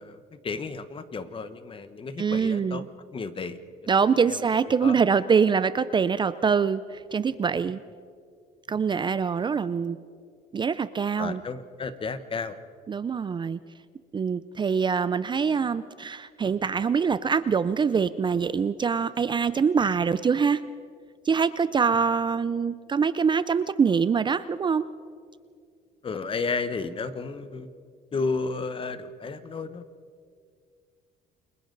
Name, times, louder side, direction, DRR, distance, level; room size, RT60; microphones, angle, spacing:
voice 1, 0.0-2.8 3.1-3.9 4.2-4.4 4.6-5.0 11.2-12.6 26.0-27.7 28.1-29.8, left 4 dB, 30° left, 11 dB, 1.1 m, -33 dB
voice 2, 2.2-2.9 3.9-7.8 8.7-10.0 10.5-11.4 12.9-13.6 14.1-20.6 21.2-24.8, right 6 dB, 25° right, 14 dB, 0.5 m, -24 dB
29.0 x 22.5 x 4.0 m, 2.2 s
cardioid pair, 110°, 17 cm